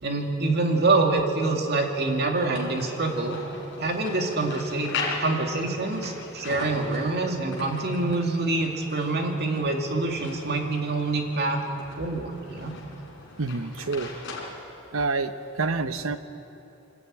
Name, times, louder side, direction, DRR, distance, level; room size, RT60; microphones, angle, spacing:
voice 1, 0.0-3.4 3.8-4.9 5.2-11.6 11.9-12.7, right 3 dB, 50° right, 2 dB, 2.3 m, -26 dB
sound 1, 2.4-14.5, left 3 dB, 60° left, 4.1 m, -39 dB
voice 2, 13.4-14.1 14.9-16.2, right 3 dB, 70° right, 10 dB, 0.9 m, -27 dB
24.5 x 14.0 x 8.9 m, 2.9 s
head